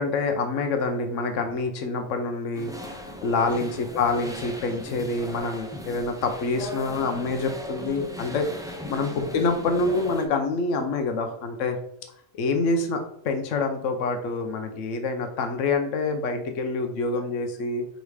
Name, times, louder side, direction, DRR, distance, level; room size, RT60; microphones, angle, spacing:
voice 1, 0.0-11.8 12.3-17.9, left 3 dB, 85° left, 6 dB, 1.1 m, -27 dB
sound 1, 2.5-10.3, equal, 5° right, 0.4 m, -38 dB
5.2 x 3.8 x 4.8 m, 0.72 s
omnidirectional pair, 1.3 m